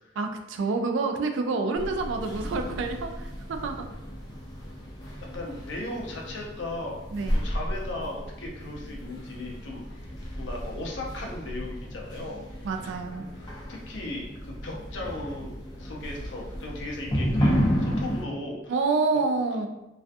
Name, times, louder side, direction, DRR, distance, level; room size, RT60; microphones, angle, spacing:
voice 1, 0.2-3.9 7.1-7.4 12.6-13.3 18.7-19.7, right 3 dB, 80° right, 5 dB, 0.3 m, -28 dB
sound 1, 1.7-18.2, equal, 20° left, 0.5 m, -32 dB
voice 2, 5.2-18.7, left 2 dB, 80° left, -1 dB, 0.6 m, -37 dB
2.4 x 2.3 x 2.5 m, 0.94 s
head